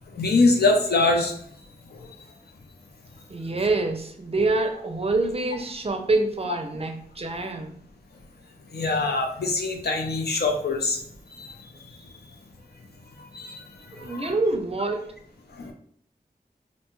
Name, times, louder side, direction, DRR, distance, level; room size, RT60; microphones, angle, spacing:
voice 1, 0.1-1.3 8.7-11.0 11.4-11.5 13.3-13.5 14.0-14.3 15.6-15.7, left 3 dB, 80° left, 2 dB, 0.6 m, -23 dB
voice 2, 3.3-7.7 14.0-15.1, right 2 dB, 35° right, 5 dB, 0.4 m, -26 dB
2.6 x 2.2 x 3.0 m, 0.62 s
wide cardioid pair, 55°, 16 cm